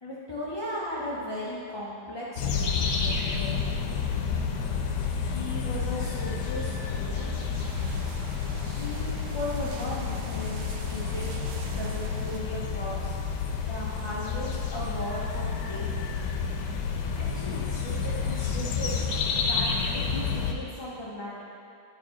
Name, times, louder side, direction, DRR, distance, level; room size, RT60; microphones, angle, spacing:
voice 1, 0.0-4.1 5.2-7.4 8.6-13.1 13.6-16.2 17.1-19.7 19.9-21.4, left 1 dB, 30° left, -8 dB, 0.4 m, -37 dB
sound 1, 2.4-20.5, left 5 dB, 85° left, 1.3 m, -30 dB
sound 2, 6.8-12.4, right 5 dB, 70° right, 0.8 m, -46 dB
9.5 x 4.8 x 3.8 m, 2.4 s
omnidirectional pair, 1.8 m